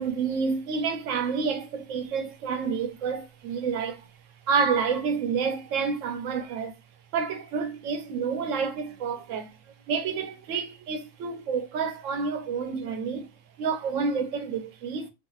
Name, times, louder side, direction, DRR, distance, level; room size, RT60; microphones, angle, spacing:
voice 1, 0.0-6.8 7.1-9.6 9.9-13.3 13.6-15.1, right 5 dB, 70° right, 0.9 m, -29 dB
3.4 x 2.7 x 2.4 m
omnidirectional pair, 1.4 m